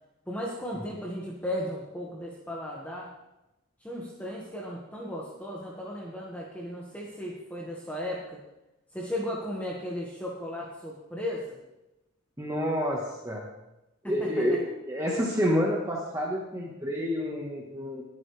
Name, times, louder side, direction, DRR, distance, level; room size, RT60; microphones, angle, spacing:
voice 1, 0.3-3.1 3.8-8.4 8.9-11.6, left 1 dB, 10° left, -4 dB, 1.7 m, -35 dB
voice 2, 12.4-13.5 14.0-18.0, equal, 15° right, -2 dB, 1.5 m, -28 dB
21.5 x 9.4 x 3.4 m, 0.95 s
head